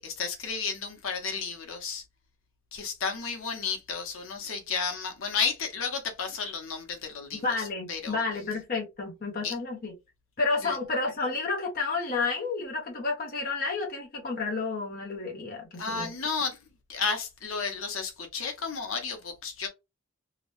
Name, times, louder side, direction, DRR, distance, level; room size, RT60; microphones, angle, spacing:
voice 1, 0.0-2.0 2.7-8.2 9.4-9.5 10.6-10.8 15.8-16.6 16.9-19.7, left 5 dB, 80° left, 0.8 m, -32 dB
voice 2, 7.4-9.9 10.4-16.1, left 3 dB, 45° left, 0.7 m, -31 dB
2.9 x 2.0 x 2.9 m
head